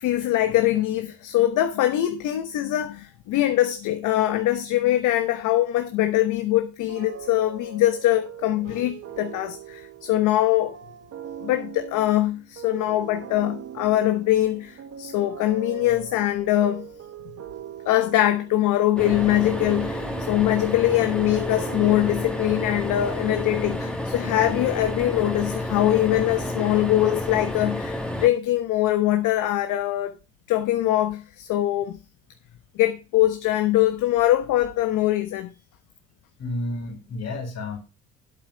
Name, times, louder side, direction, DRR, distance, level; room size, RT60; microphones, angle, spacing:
voice 1, 0.0-10.8 11.4-16.9 17.8-30.1 30.5-32.0 32.8-35.5, left 14 dB, 70° left, 1.1 m, -23 dB
sound 1, 6.9-24.1, right 9 dB, 50° right, 1.4 m, -41 dB
sound 2, 19.0-28.3, left 1 dB, 5° left, 2.0 m, -30 dB
voice 2, 36.4-37.8, left 2 dB, 55° left, 4.0 m, -31 dB
8.3 x 8.1 x 5.0 m
cardioid pair, 105°, 32 cm